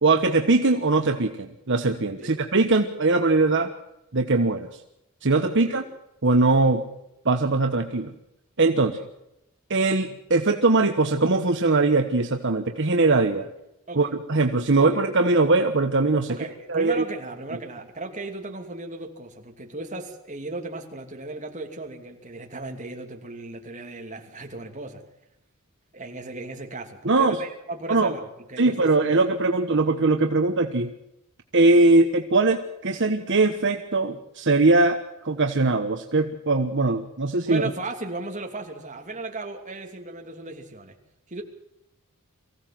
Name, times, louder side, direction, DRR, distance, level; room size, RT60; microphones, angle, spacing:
voice 1, 0.0-3.7 4.1-4.7 5.2-5.8 6.2-6.8 7.2-8.1 8.6-9.0 9.7-13.5 14.0-16.4 16.7-17.0 27.0-27.4 27.9-28.1 28.6-30.9 31.5-35.0 35.2-37.6, right 3 dB, 55° right, 5 dB, 1.2 m, -21 dB
voice 2, 5.5-5.8 8.8-9.1 13.9-14.1 14.8-15.0 16.3-25.0 25.9-29.1 37.4-41.0 41.3-41.4, right 2 dB, 35° right, 3 dB, 2.8 m, -36 dB
24.0 x 16.0 x 7.7 m, 0.86 s
head